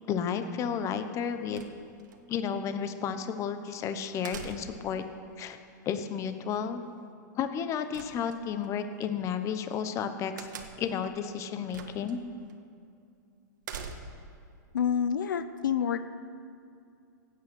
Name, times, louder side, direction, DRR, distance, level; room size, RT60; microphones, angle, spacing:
voice 1, 0.1-1.6 2.3-5.0 5.4-5.6 5.8-6.8 7.4-10.5 10.8-12.2, left 7 dB, 30° left, 9 dB, 1.0 m, -32 dB
sound 1, 1.5-2.2 4.2-4.9 7.9-8.7 10.4-11.0 11.7-12.1 12.5-12.6 13.6-14.3, right 6 dB, 80° right, 1.5 m, -43 dB
voice 2, 14.7-16.1, left 8 dB, 85° left, 12 dB, 0.7 m, -28 dB
16.5 x 8.9 x 6.3 m, 2.5 s
hypercardioid pair, 130°, 10 cm